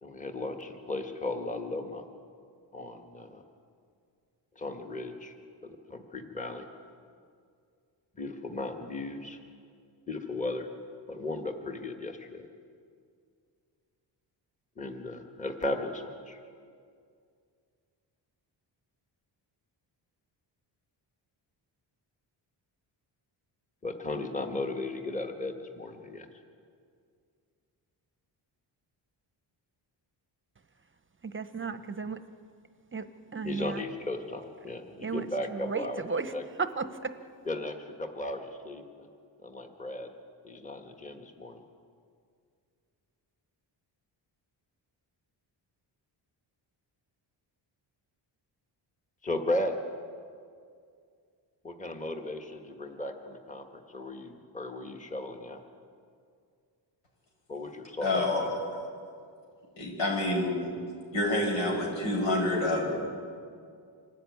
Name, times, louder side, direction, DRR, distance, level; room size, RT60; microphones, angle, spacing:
voice 1, 0.0-2.0 2.7-3.4 4.5-5.3 5.6-6.6 8.2-9.4 10.1-10.7 11.1-12.5 14.8-16.4 23.8-26.3 33.4-36.0 36.3-36.4 37.5-38.8 39.4-40.1 40.4-41.6 49.2-49.8 51.6-55.6 57.5-58.5, left 2 dB, 15° left, 4 dB, 1.6 m, -36 dB
voice 2, 31.3-32.2 32.9-33.9 35.0-36.3 36.6-37.1, right 5 dB, 25° right, 11 dB, 0.8 m, -34 dB
voice 3, 58.0-58.8 59.8-60.7 61.1-63.1, left 1 dB, 90° left, -1 dB, 6.6 m, -28 dB
25.0 x 13.5 x 9.5 m, 2.3 s
wide cardioid pair, 125°, 45 cm